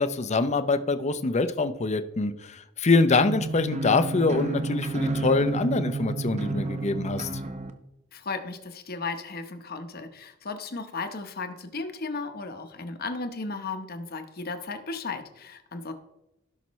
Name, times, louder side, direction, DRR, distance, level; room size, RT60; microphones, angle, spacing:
voice 1, 0.0-7.3, left 3 dB, 35° left, 11 dB, 0.6 m, -24 dB
sound 1, 3.1-7.7, right 3 dB, 35° right, 0.8 m, -30 dB
voice 2, 8.1-15.9, left 3 dB, 50° left, 8 dB, 1.0 m, -35 dB
16.5 x 5.8 x 3.1 m, 0.94 s
head